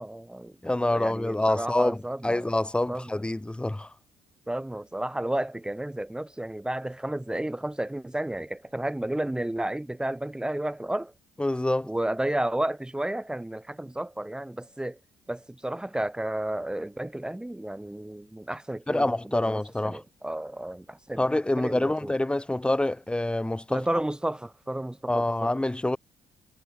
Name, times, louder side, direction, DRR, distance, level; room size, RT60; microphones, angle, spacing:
voice 1, 0.0-0.5 0.9-2.4 2.9-3.2 4.5-11.1 11.8-15.0 15.3-21.2 21.6-22.1 23.7-25.5, right 1 dB, 5° right, 6.3 m, -32 dB
voice 2, 0.6-3.9 11.4-11.9 18.9-20.0 21.2-23.8 25.1-26.0, left 1 dB, 10° left, 4.0 m, -26 dB
cardioid pair, 100°, 11 cm